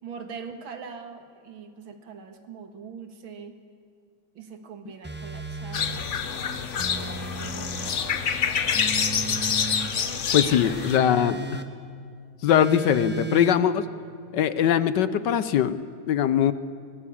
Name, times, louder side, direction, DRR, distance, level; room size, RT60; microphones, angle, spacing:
voice 1, 0.0-3.6 4.3-8.2 9.9-11.4, right 6 dB, 80° right, 7 dB, 2.5 m, -42 dB
sound 1, 5.0-6.0 6.8-8.0 8.7-9.9 10.6-11.7 12.5-13.6, right 3 dB, 5° right, 1.0 m, -34 dB
sound 2, 5.7-11.0, left 7 dB, 45° left, 1.1 m, -27 dB
voice 2, 10.3-11.4 12.4-13.9 14.3-16.5, left 9 dB, 70° left, 14 dB, 1.2 m, -21 dB
22.5 x 18.0 x 8.6 m, 2.3 s
omnidirectional pair, 2.2 m